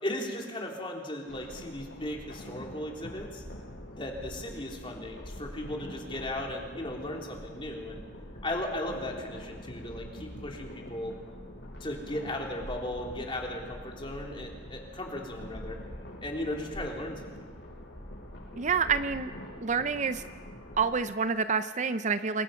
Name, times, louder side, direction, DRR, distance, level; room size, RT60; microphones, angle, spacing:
voice 1, 0.0-3.4 3.9-8.0 8.4-11.1 11.8-15.7 16.2-17.3, left 1 dB, 30° left, 0 dB, 3.5 m, -36 dB
sound 1, 1.3-21.0, left 1 dB, 70° left, 6.8 m, -44 dB
voice 2, 18.6-19.3 19.6-20.2 20.8-22.4, right 5 dB, 40° right, 11 dB, 0.6 m, -28 dB
28.0 x 22.0 x 5.8 m, 1.5 s
head